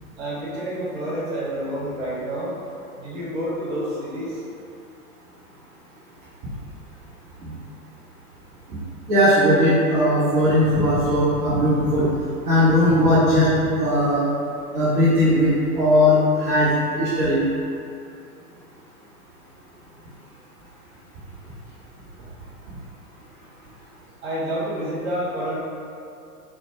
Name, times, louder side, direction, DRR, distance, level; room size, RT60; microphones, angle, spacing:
voice 1, 0.2-2.6 3.0-4.4 24.2-25.6, right 1 dB, 45° right, -8 dB, 1.4 m, -28 dB
voice 2, 9.1-12.1 12.4-13.5 13.8-14.2 14.7-16.7 17.0-17.4, left 1 dB, 25° right, -12 dB, 0.7 m, -18 dB
4.0 x 2.1 x 2.9 m, 2.5 s
figure-of-eight pair, 110°, 46 cm